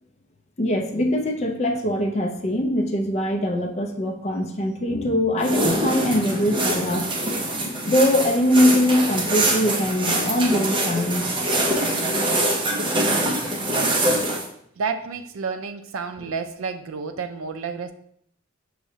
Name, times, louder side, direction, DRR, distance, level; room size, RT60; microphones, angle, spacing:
voice 1, 0.6-7.1 7.6-11.4, left 1 dB, 35° left, 2 dB, 0.5 m, -22 dB
sound 1, 5.4-14.5, right 1 dB, 25° right, 0.6 m, -24 dB
voice 2, 14.8-17.9, right 5 dB, 70° right, 8 dB, 0.4 m, -30 dB
5.8 x 3.1 x 2.7 m, 0.69 s
head